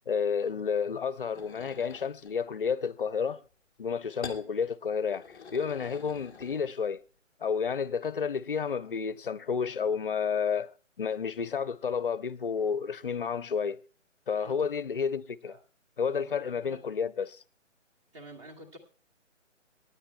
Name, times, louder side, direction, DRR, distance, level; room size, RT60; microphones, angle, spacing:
voice 1, 0.1-3.4 3.8-7.0 7.4-10.7 11.0-13.8 14.3-15.6 16.0-17.4, left 6 dB, 45° left, 0.6 m, -31 dB
sound 1, 1.3-2.4 4.2-4.5 5.0-6.9, left 5 dB, 5° left, 0.8 m, -46 dB
voice 2, 16.1-16.8 18.1-18.8, right 1 dB, 25° right, 2.1 m, -49 dB
26.5 x 9.7 x 2.3 m
figure-of-eight pair, 155°, 38 cm